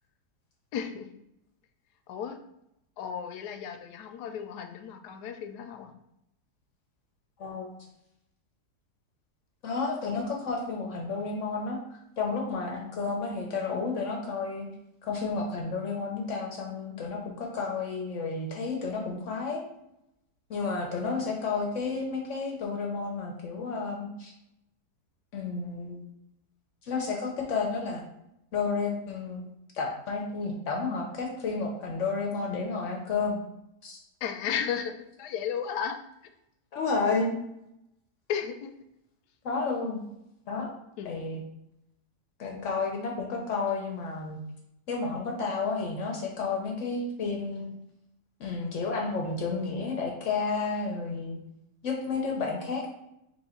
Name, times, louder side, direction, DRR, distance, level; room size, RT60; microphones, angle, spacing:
voice 1, 0.7-1.1 2.1-2.4 3.0-5.9 20.9-21.3 34.2-34.9 35.2-36.0 38.3-38.7 41.0-41.4, left 8 dB, 85° left, 6 dB, 1.1 m, -34 dB
voice 2, 9.6-11.8 12.2-14.7 15.0-19.6 20.5-24.3 25.3-26.0 26.8-28.0 28.5-29.4 29.7-33.4 33.8-34.0 36.7-37.4 39.4-40.0 40.5-40.7 41.1-41.4 42.4-44.4 44.9-47.7 48.4-51.4 51.8-53.0, left 4 dB, 60° left, 0 dB, 0.9 m, -31 dB
3.7 x 2.9 x 4.3 m, 0.82 s
omnidirectional pair, 1.7 m